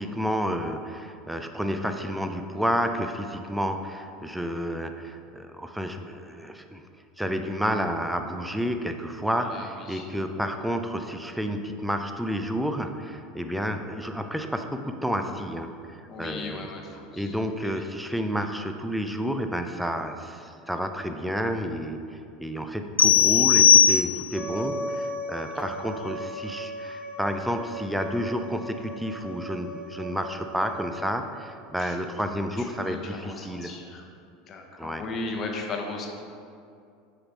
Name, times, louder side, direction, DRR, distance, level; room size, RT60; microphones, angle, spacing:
voice 1, 0.0-6.8 7.2-16.7 17.1-22.0 22.4-33.7 34.8-35.0, equal, 5° right, 6 dB, 0.5 m, -30 dB
voice 2, 9.3-10.1 16.1-17.4 17.6-17.7 25.5-25.7 31.8-32.0 32.6-34.0 34.5-36.1, left 3 dB, 40° left, 1 dB, 1.0 m, -37 dB
sound 1, 23.0-24.5, left 8 dB, 90° left, 0.3 m, -18 dB
Wind instrument woodwind instrument, 24.3-30.9, right 1 dB, 25° right, 1.2 m, -37 dB
6.5 x 4.0 x 4.7 m, 2.4 s
hypercardioid pair, 80°, 0 cm